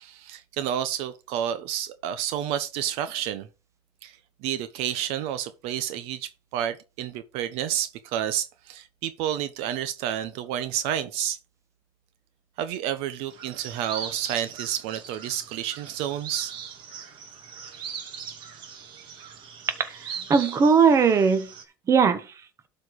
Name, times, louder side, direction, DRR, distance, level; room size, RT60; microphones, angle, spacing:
voice 1, 0.0-3.5 4.0-11.4 12.6-16.5, right 10 dB, 65° right, 0.9 m, -30 dB
sound 1, 13.3-21.6, right 7 dB, 50° right, 2.3 m, -40 dB
voice 2, 19.8-21.5 21.9-22.3, right 5 dB, 30° right, 1.3 m, -20 dB
12.0 x 4.5 x 4.8 m
cardioid pair, 140°, 11 cm